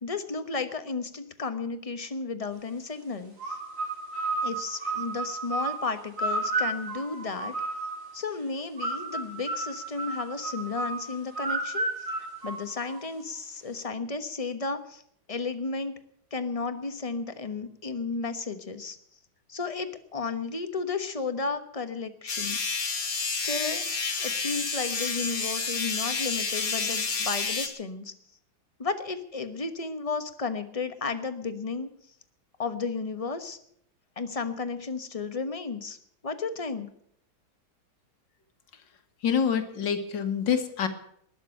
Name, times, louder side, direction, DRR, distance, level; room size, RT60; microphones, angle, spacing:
voice 1, 0.0-3.6 4.4-7.5 8.1-12.1 12.4-15.0 15.3-16.0 16.3-19.0 19.5-22.6 23.3-23.8 24.2-28.1 28.8-31.9 32.6-33.6 34.2-36.0 36.2-36.9, left 4 dB, 25° left, 9 dB, 0.9 m, -33 dB
sound 1, 3.4-8.1 8.8-13.2, right 2 dB, 40° right, 5.1 m, -32 dB
sound 2, 22.3-27.7, left 4 dB, 50° left, 2.2 m, -30 dB
voice 2, 39.2-40.9, left 7 dB, 65° left, 8 dB, 2.1 m, -26 dB
19.5 x 7.2 x 9.0 m, 0.69 s
omnidirectional pair, 2.1 m